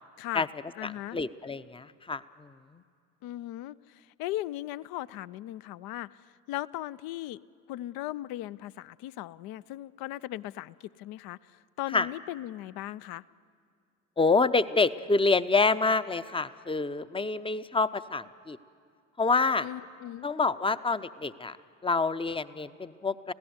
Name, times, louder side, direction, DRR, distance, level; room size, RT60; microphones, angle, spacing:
voice 1, 0.2-0.5 0.8-1.2 3.2-7.4 7.7-13.2 19.6-20.3, left 15 dB, 60° left, 17 dB, 0.6 m, -38 dB
voice 2, 0.8-2.8 11.9-12.1 14.2-18.6 19.2-19.7 20.2-21.6 21.8-23.3, left 3 dB, 15° left, 14 dB, 0.7 m, -27 dB
26.0 x 16.5 x 8.0 m, 2.3 s
hypercardioid pair, 55°, 41 cm